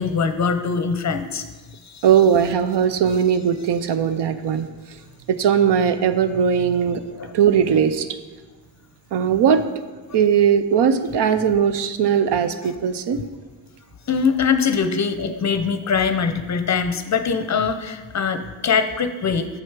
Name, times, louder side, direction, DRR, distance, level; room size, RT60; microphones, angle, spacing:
voice 1, 0.0-1.4 1.9-2.0 7.2-7.3 13.2-13.3 14.1-19.5, left 6 dB, 40° left, 9 dB, 0.6 m, -22 dB
voice 2, 2.0-4.7 5.3-7.0 7.3-8.1 9.1-9.6 10.1-13.2, right 8 dB, 65° right, 11 dB, 0.6 m, -19 dB
7.1 x 6.3 x 4.7 m, 1.3 s
cardioid pair, 100°, 44 cm